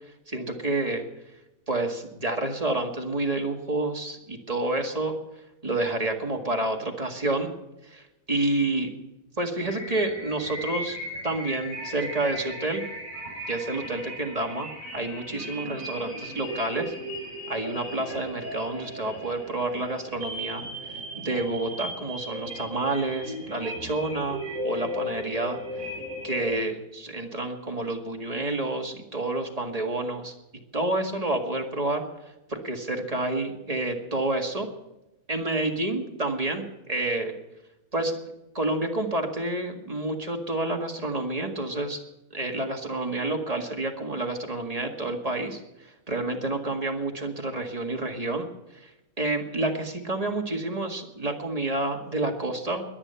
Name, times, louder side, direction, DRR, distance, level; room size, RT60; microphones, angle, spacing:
voice 1, 0.3-1.0 1.7-5.2 5.6-7.5 7.8-8.9 9.4-11.0 11.2-12.8 13.5-16.9 17.5-20.6 21.2-25.6 26.2-30.3 30.7-32.0 32.5-34.7 35.3-37.3 37.9-38.1 38.5-42.0 42.3-45.6 46.1-48.5 48.7-48.9 49.2-52.9, right 2 dB, 25° right, 2 dB, 1.9 m, -29 dB
sound 1, 9.6-26.5, equal, 35° left, 6.6 m, -37 dB
21.5 x 9.2 x 5.6 m, 0.97 s
omnidirectional pair, 1.6 m